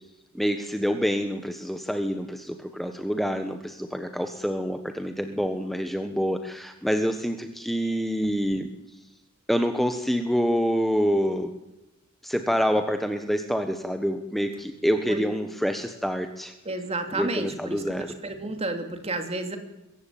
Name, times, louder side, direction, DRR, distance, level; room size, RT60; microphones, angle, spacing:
voice 1, 0.3-8.7 9.5-11.5 12.2-16.5 17.1-18.1, equal, ahead, 6 dB, 1.2 m, -27 dB
voice 2, 16.6-18.0 18.2-19.6, right 2 dB, 30° right, 6 dB, 2.7 m, -31 dB
23.0 x 14.5 x 9.3 m, 0.98 s
head